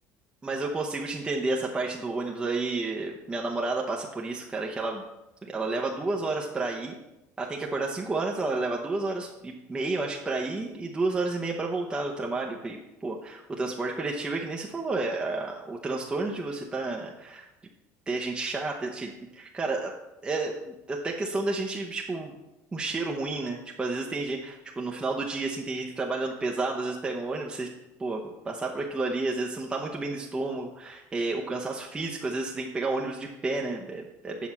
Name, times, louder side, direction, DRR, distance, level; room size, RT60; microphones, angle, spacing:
voice 1, 0.4-5.0 5.4-7.0 7.4-17.5 18.1-19.9 20.2-22.4 22.7-27.7 28.0-34.5, right 3 dB, 15° right, 0 dB, 0.7 m, -31 dB
7.5 x 5.5 x 5.9 m, 0.97 s
cardioid pair, 150°, 7 cm